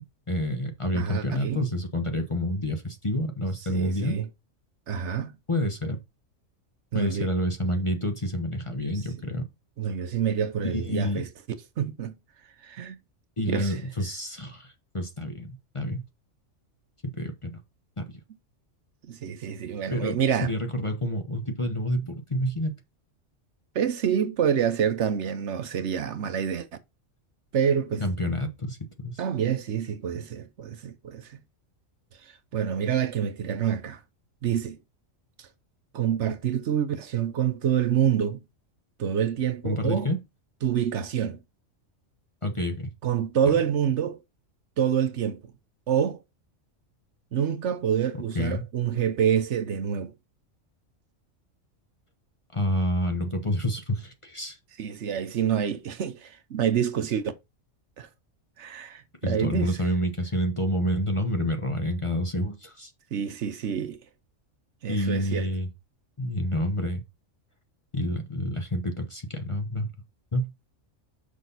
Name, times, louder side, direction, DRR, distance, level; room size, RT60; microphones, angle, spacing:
voice 1, 0.3-4.2 5.5-6.0 6.9-9.5 10.7-11.2 13.4-16.0 17.1-17.5 18.0-18.1 19.9-22.7 28.0-29.2 39.6-40.2 42.4-42.9 43.5-43.6 48.3-48.6 52.5-54.6 59.2-62.9 64.9-65.7 66.2-67.0 67.9-69.9 70.3-70.5, equal, 25° left, 1.0 m, -28 dB
voice 2, 0.9-1.7 3.7-4.3 4.9-5.4 6.9-7.3 9.8-11.3 11.8-12.1 12.6-13.0 13.4-13.8 19.0-20.5 23.7-26.7 27.5-28.0 29.2-31.4 32.2-34.0 34.4-34.8 35.4-35.5 35.9-38.4 39.0-40.1 40.6-41.4 43.0-44.2 44.8-45.4 45.9-46.2 47.3-50.1 54.8-57.2 58.0-58.1 58.6-59.8 63.1-64.0 64.8-65.5, right 8 dB, 65° right, 1.0 m, -27 dB
6.2 x 5.7 x 4.0 m
omnidirectional pair, 1.3 m